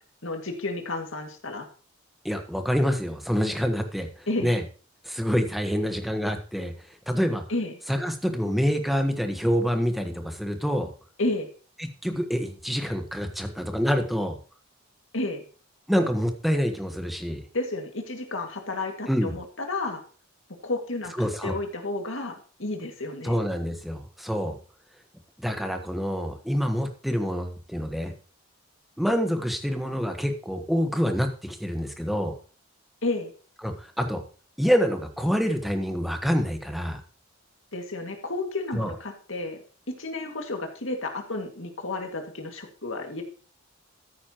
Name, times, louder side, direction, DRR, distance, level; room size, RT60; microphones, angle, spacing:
voice 1, 0.2-1.7 4.3-4.5 7.5-7.7 11.2-11.5 15.1-15.4 17.5-20.0 20.6-23.4 33.0-33.3 37.7-39.6 39.9-43.2, left 2 dB, 65° left, 3 dB, 2.2 m, -31 dB
voice 2, 2.2-4.6 5.0-7.4 7.9-10.9 11.8-14.4 15.9-17.4 19.1-19.4 21.2-21.6 23.2-24.6 25.4-28.1 29.0-32.3 33.6-34.2 34.6-37.0 38.7-38.9, equal, ahead, 5 dB, 1.2 m, -26 dB
14.0 x 9.6 x 3.0 m, 0.40 s
head